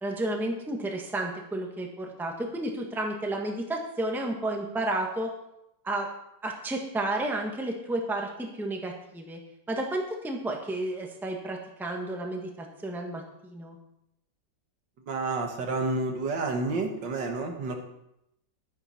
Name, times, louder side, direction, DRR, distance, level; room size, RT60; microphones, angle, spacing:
voice 1, 0.0-5.3 5.8-6.1 6.4-9.4 9.7-13.8, right 1 dB, ahead, 1 dB, 1.2 m, -32 dB
voice 2, 15.1-17.7, right 3 dB, 75° right, 3 dB, 2.0 m, -29 dB
11.0 x 9.9 x 4.3 m, 0.81 s
omnidirectional pair, 2.0 m